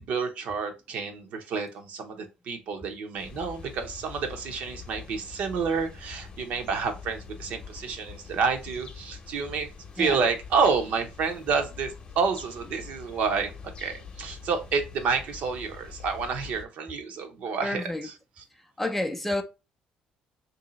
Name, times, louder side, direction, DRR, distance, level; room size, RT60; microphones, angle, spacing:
voice 1, 0.0-9.7 10.0-13.5 13.8-18.4, right 5 dB, 65° right, 0.8 m, -29 dB
sound 1, 3.2-16.6, left 6 dB, 35° left, 0.8 m, -45 dB
voice 2, 17.6-18.1 18.8-19.4, left 1 dB, 10° left, 0.4 m, -29 dB
2.9 x 2.7 x 3.9 m
cardioid pair, 130°, 3 cm